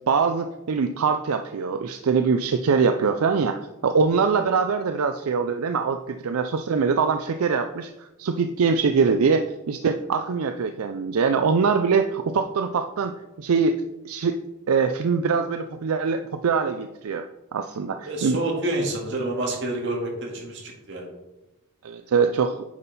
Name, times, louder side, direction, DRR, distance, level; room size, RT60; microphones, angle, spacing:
voice 1, 0.1-14.4 14.7-17.3 17.5-18.4 21.8-22.6, right 5 dB, 80° right, 8 dB, 0.4 m, -23 dB
voice 2, 18.1-21.1, right 2 dB, 55° right, -1 dB, 2.0 m, -28 dB
9.6 x 5.5 x 4.1 m, 1.0 s
head